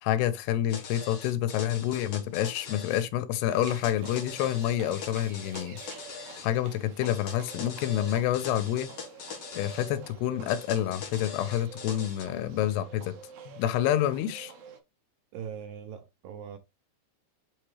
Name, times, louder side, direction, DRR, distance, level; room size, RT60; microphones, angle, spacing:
voice 1, 0.0-6.0 6.4-8.9 9.5-13.1 13.5-14.5, left 12 dB, 85° left, 2.9 m, -28 dB
sound 1, 0.7-3.1 3.6-6.5 7.1-9.9 10.5-12.3, left 5 dB, 50° left, 2.3 m, -42 dB
Livestock farm animals working animals, 3.4-14.8, right 6 dB, 55° right, 2.6 m, -48 dB
voice 2, 15.3-16.6, right 8 dB, 75° right, 2.1 m, -40 dB
8.8 x 4.4 x 3.2 m
omnidirectional pair, 4.7 m